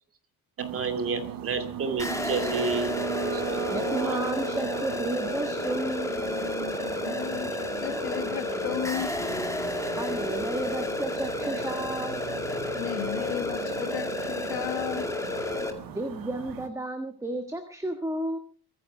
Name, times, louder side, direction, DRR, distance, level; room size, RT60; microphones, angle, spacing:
sound 1, 0.6-16.7, right 9 dB, 70° right, 2.2 m, -38 dB
voice 1, 0.7-2.9 3.2-3.6 4.1-4.2, right 4 dB, 35° right, 8 dB, 2.6 m, -30 dB
sound 2, 2.0-15.7, left 2 dB, 10° left, 2.0 m, -31 dB
voice 2, 3.7-6.2 10.0-12.3 15.9-18.4, right 1 dB, 10° right, 7 dB, 1.4 m, -33 dB
voice 3, 6.8-9.1 12.7-15.1, left 10 dB, 80° left, 9 dB, 1.7 m, -34 dB
22.5 x 9.8 x 5.3 m, 0.43 s
cardioid pair, 150°, 36 cm